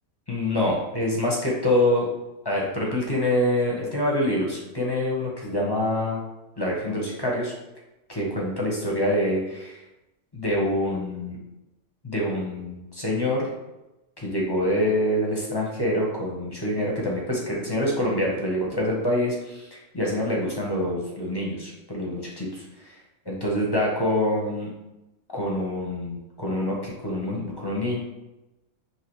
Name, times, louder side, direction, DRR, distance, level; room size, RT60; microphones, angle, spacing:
voice 1, 0.3-2.1 2.4-6.2 6.6-7.5 8.1-9.8 10.3-11.4 12.0-13.5 14.2-23.0 23.3-24.7 25.3-28.0, left 1 dB, 20° left, -3 dB, 0.8 m, -26 dB
5.6 x 2.9 x 3.1 m, 0.96 s
omnidirectional pair, 1.5 m